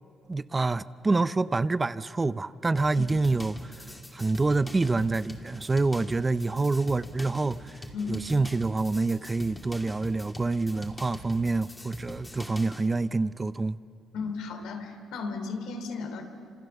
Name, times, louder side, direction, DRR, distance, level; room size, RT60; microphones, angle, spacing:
voice 1, 0.3-3.8 4.1-7.8 8.1-13.8, right 3 dB, 25° right, 0.6 m, -27 dB
sound 1, 2.8-12.9, left 1 dB, 15° left, 2.7 m, -43 dB
voice 2, 14.1-16.2, left 4 dB, 90° left, 3.2 m, -34 dB
29.0 x 27.0 x 7.0 m
cardioid pair, 90°, 0 cm